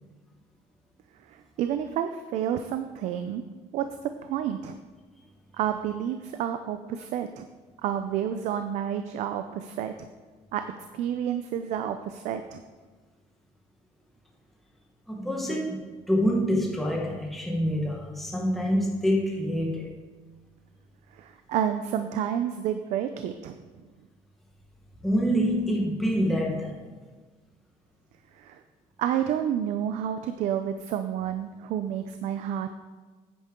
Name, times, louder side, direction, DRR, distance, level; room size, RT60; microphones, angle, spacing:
voice 1, 1.2-3.4 3.7-3.9 4.2-4.8 5.5-7.5 7.8-10.1 10.5-10.6 10.9-12.6 21.1-23.6 28.3-28.6 29.0-32.7, right 9 dB, 70° right, 8 dB, 0.5 m, -30 dB
voice 2, 15.1-19.9 25.0-26.9, equal, ahead, -2 dB, 1.3 m, -26 dB
9.9 x 9.5 x 3.7 m, 1.3 s
cardioid pair, 165°, 12 cm